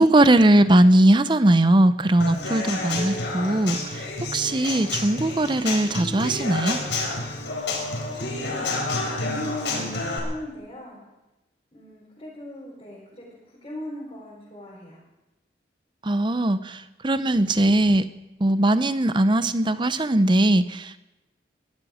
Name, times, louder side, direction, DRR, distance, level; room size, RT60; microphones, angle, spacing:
voice 1, 0.0-4.0 4.3-6.8 16.0-18.1 18.4-21.0, right 1 dB, 25° right, 13 dB, 0.7 m, -19 dB
Human voice / Acoustic guitar / Drum, 2.2-10.2, left 2 dB, 85° left, 4.6 m, -29 dB
voice 2, 7.3-11.0 11.7-13.3 13.6-15.0, left 1 dB, 30° left, -5 dB, 4.2 m, -39 dB
21.5 x 13.0 x 5.0 m, 1.0 s
head